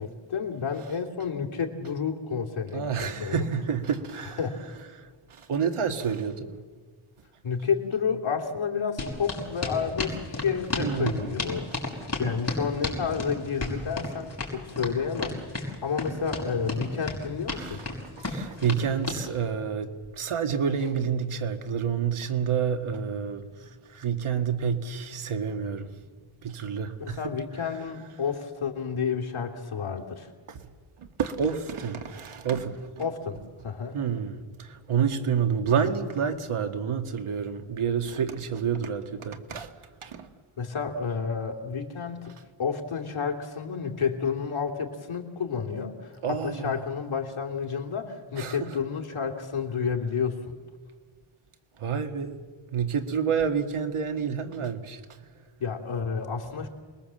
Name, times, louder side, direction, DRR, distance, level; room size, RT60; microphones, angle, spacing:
voice 1, 0.0-3.5 4.4-4.6 7.4-11.7 12.2-17.8 27.0-30.3 33.0-33.4 33.6-34.0 40.6-42.3 42.6-50.5 55.6-56.7, left 6 dB, 85° left, 2.9 m, -30 dB
voice 2, 2.7-4.4 5.0-6.6 10.8-11.4 17.5-17.9 18.2-25.9 26.4-27.2 30.5-30.6 31.0-33.1 33.9-39.7 40.0-40.3 46.2-46.8 48.4-48.7 51.8-52.4 52.7-55.0, right 7 dB, 90° right, 1.9 m, -29 dB
sound 1, 9.0-19.2, left 2 dB, 30° left, 5.6 m, -32 dB
28.0 x 21.0 x 7.6 m
wide cardioid pair, 130°, 48 cm